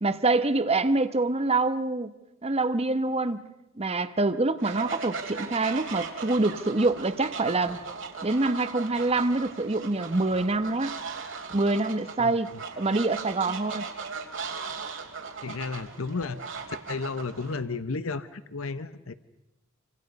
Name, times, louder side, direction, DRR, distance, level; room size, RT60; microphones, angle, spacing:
voice 1, 0.0-2.1 2.4-3.5 3.8-7.8 8.2-11.0 11.5-13.9, right 2 dB, 30° right, 12 dB, 1.0 m, -26 dB
Fowl, 4.6-17.6, right 5 dB, 65° right, 3.0 m, -38 dB
voice 2, 12.2-12.6 15.4-16.5 16.9-19.1, left 4 dB, 80° left, 13 dB, 0.9 m, -33 dB
27.0 x 25.5 x 5.3 m, 0.95 s
head